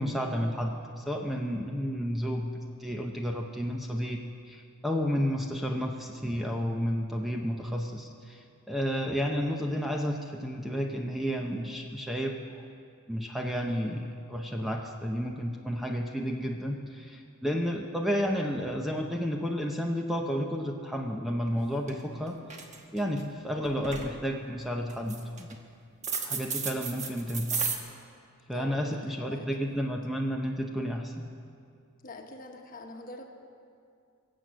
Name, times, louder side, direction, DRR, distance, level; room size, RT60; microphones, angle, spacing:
voice 1, 0.0-4.2 4.5-12.6 13.1-22.4 22.9-25.6 26.2-27.6 28.5-31.3, equal, ahead, 1 dB, 0.7 m, -31 dB
sound 1, 21.5-21.6 21.9-22.2 22.4-23.2 23.6-24.2 24.9-25.5 26.0-27.8, right 5 dB, 35° right, 1.2 m, -33 dB
voice 2, 28.5-28.9 29.3-29.9 32.0-33.3, left 2 dB, 40° left, 3 dB, 1.2 m, -45 dB
23.0 x 7.7 x 6.2 m, 2.4 s
head